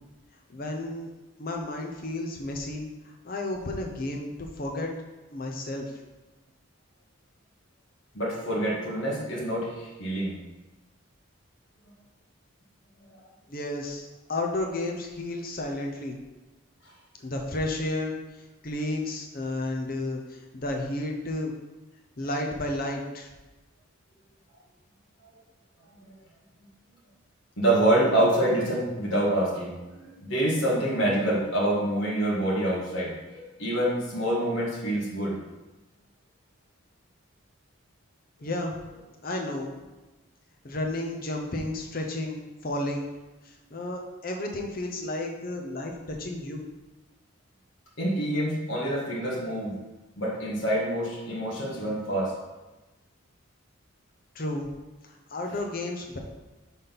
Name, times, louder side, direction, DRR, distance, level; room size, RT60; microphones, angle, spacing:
voice 1, 0.5-1.1 1.4-2.9 3.2-4.9 5.3-5.9 13.5-16.2 17.2-18.1 18.6-21.5 22.2-23.3 38.4-38.8 39.2-39.7 40.6-43.1 43.7-46.6 54.3-54.7 55.0-56.2, left 1 dB, 45° left, 1 dB, 0.7 m, -32 dB
voice 2, 8.1-10.4 27.6-35.4 48.0-49.8 50.2-52.3, right 1 dB, 65° left, -6 dB, 1.7 m, -26 dB
5.6 x 4.2 x 5.3 m, 1.1 s
head